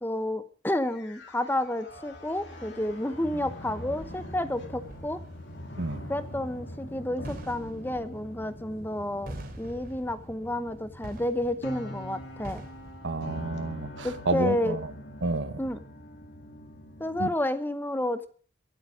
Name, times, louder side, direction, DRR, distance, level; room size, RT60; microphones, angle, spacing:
voice 1, 0.0-5.2 6.1-12.6 14.0-14.8 15.6-15.8 17.0-18.3, left 1 dB, 10° left, 0.9 m, -30 dB
sound 1, 0.8-17.2, left 1 dB, 65° left, 2.2 m, -43 dB
sound 2, 1.9-13.3, equal, 50° right, 3.3 m, -47 dB
voice 2, 5.8-6.1 13.0-14.9 15.2-15.6 17.2-17.3, right 2 dB, 85° right, 1.4 m, -30 dB
23.5 x 8.2 x 4.9 m
head